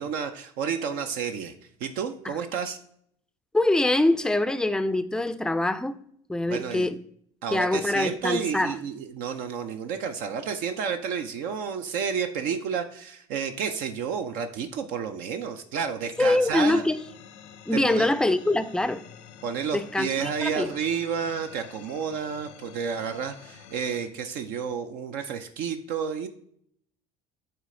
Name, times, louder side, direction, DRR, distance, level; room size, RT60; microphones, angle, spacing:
voice 1, 0.0-1.5 1.8-2.8 6.5-6.9 7.4-16.8 17.7-18.1 19.4-26.3, right 6 dB, 70° right, 0.5 m, -31 dB
voice 2, 3.5-6.0 6.3-7.0 7.5-8.8 16.2-17.0 17.7-19.0 19.7-20.7, left 2 dB, 5° left, 0.4 m, -24 dB
sound 1, 16.1-24.1, left 8 dB, 80° left, 0.8 m, -48 dB
8.6 x 3.3 x 3.7 m
hypercardioid pair, 75°, 15 cm